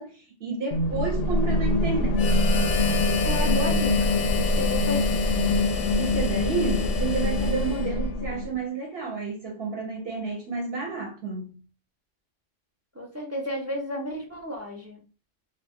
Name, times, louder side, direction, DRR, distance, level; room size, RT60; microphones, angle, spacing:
voice 1, 0.0-2.5 6.0-11.6, right 4 dB, 55° right, 0.9 m, -31 dB
sound 1, 0.7-8.5, left 1 dB, 65° left, 0.7 m, -24 dB
Harmonica, 2.2-8.2, left 7 dB, 85° left, 0.9 m, -32 dB
voice 2, 3.2-5.5 12.9-15.0, left 1 dB, 20° right, 0.4 m, -33 dB
2.4 x 2.4 x 3.5 m
omnidirectional pair, 1.3 m